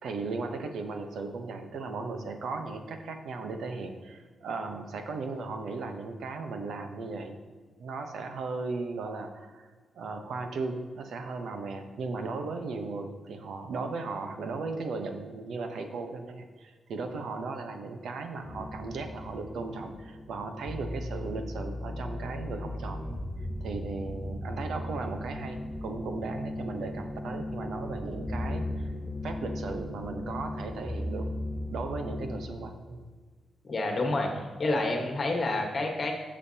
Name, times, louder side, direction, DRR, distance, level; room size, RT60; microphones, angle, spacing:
voice 1, 0.0-7.4 7.8-9.7 10.0-23.2 23.6-28.9 29.2-31.3 31.7-33.0, right 3 dB, 80° right, 6 dB, 0.9 m, -36 dB
sound 1, 18.4-32.5, left 1 dB, 20° left, 0.6 m, -37 dB
voice 2, 33.6-36.1, left 2 dB, 40° left, 2 dB, 1.4 m, -29 dB
11.5 x 7.3 x 2.9 m, 1.5 s
wide cardioid pair, 130°, 0 cm